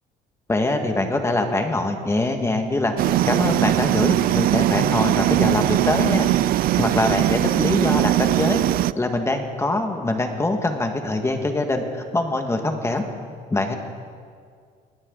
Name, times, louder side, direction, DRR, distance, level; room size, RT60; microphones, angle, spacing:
voice 1, 0.5-2.9 3.2-6.3 6.8-8.6 8.9-13.0 13.5-13.8, left 2 dB, 15° left, 4 dB, 1.8 m, -23 dB
sound 1, 3.0-8.9, right 14 dB, 60° right, 0.4 m, -20 dB
21.5 x 17.0 x 4.0 m, 2.1 s
cardioid pair, 110°, 17 cm